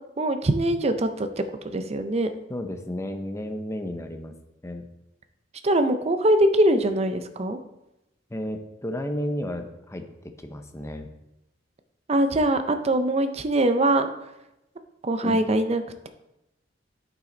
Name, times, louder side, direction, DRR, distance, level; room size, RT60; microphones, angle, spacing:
voice 1, 0.2-2.3 5.6-7.6 12.1-14.1 15.0-16.1, right 1 dB, 35° right, 9 dB, 0.6 m, -23 dB
voice 2, 2.5-4.4 4.6-4.9 8.3-11.1 15.2-15.4, left 1 dB, 15° left, 6 dB, 0.6 m, -32 dB
8.3 x 5.8 x 3.9 m, 0.90 s
head